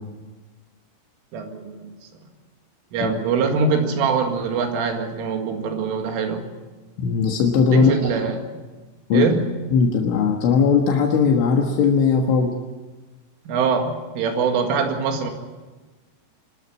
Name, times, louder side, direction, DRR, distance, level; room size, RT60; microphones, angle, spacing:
voice 1, 1.3-1.9 2.9-6.4 7.7-8.6 9.1-9.4 13.5-15.3, right 5 dB, 85° right, 4 dB, 4.5 m, -23 dB
voice 2, 7.0-7.9 9.1-9.3 9.7-12.5, left 6 dB, 75° left, 1 dB, 3.8 m, -18 dB
24.0 x 13.5 x 9.4 m, 1.3 s
omnidirectional pair, 5.7 m